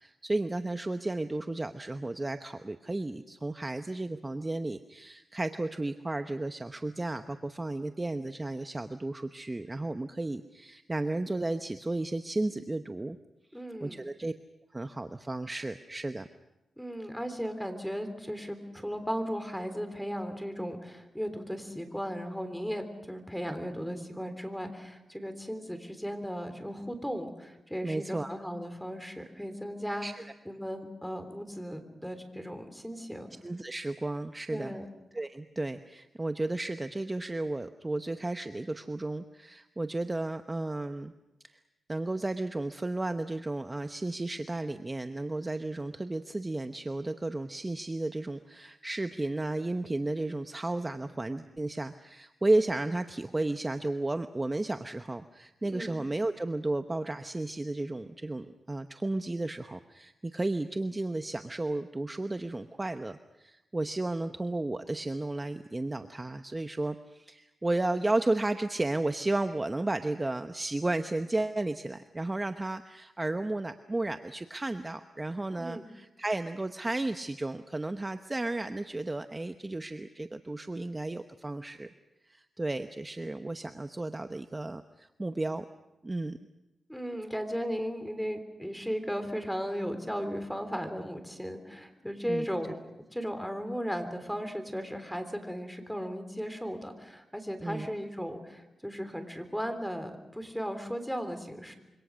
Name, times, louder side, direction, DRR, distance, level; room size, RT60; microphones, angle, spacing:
voice 1, 0.0-13.2 13.8-14.3 14.7-16.3 27.8-28.3 30.0-30.1 33.4-34.8 35.1-41.1 41.4-41.6 41.9-81.9 82.2-85.6 86.0-86.4 92.3-92.5 97.6-97.9, right 2 dB, 20° right, 8 dB, 0.9 m, -33 dB
voice 2, 13.5-14.0 16.8-33.3 34.5-34.9 55.7-56.0 75.6-75.9 86.9-92.8 93.1-101.8, equal, ahead, 8 dB, 3.5 m, -36 dB
26.5 x 24.5 x 6.3 m, 0.97 s
cardioid pair, 85°, 0 cm